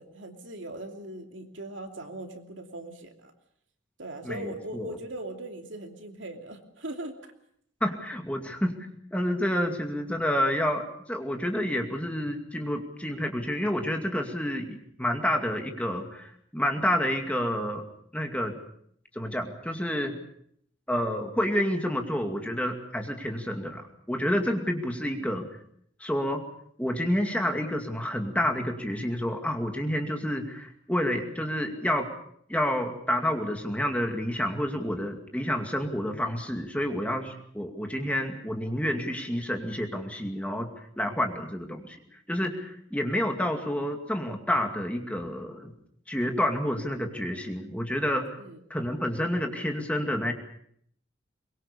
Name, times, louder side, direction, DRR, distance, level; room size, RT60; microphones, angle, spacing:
voice 1, 0.0-3.3 4.0-7.2 25.2-25.3 35.7-35.9 48.4-48.6, right 1 dB, 70° right, 4 dB, 2.8 m, -40 dB
voice 2, 4.2-5.0 7.8-8.8 9.1-10.8 11.1-17.8 18.1-18.5 19.1-20.2 20.9-23.8 24.1-25.5 26.0-26.4 26.8-32.1 32.5-40.7 41.0-42.0 42.3-45.7 46.1-48.3 48.7-50.3, equal, 5° left, 4 dB, 2.3 m, -29 dB
23.5 x 22.0 x 6.9 m, 0.67 s
head